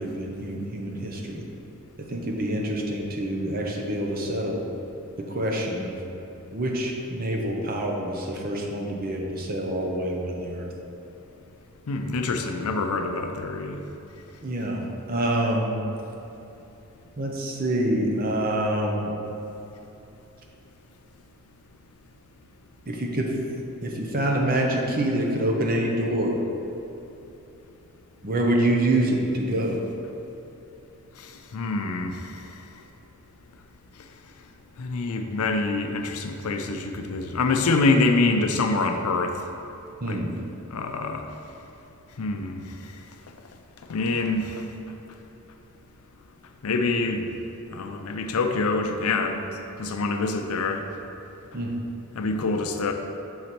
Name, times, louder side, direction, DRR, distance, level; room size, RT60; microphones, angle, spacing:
voice 1, 0.0-1.4 2.0-4.6 5.2-6.0 6.5-10.7 14.4-15.8 17.2-19.2 22.9-23.4 23.8-26.4 28.2-29.8 40.0-40.3 51.5-51.7, right 1 dB, 40° right, 0 dB, 0.7 m, -26 dB
voice 2, 11.9-13.8 31.5-32.2 34.8-39.3 40.1-40.2 40.7-41.2 42.2-42.6 43.9-44.6 46.6-47.2 47.7-49.5 49.8-50.8 52.2-52.9, left 3 dB, 90° left, 6 dB, 0.5 m, -25 dB
6.4 x 4.0 x 4.3 m, 3.0 s
head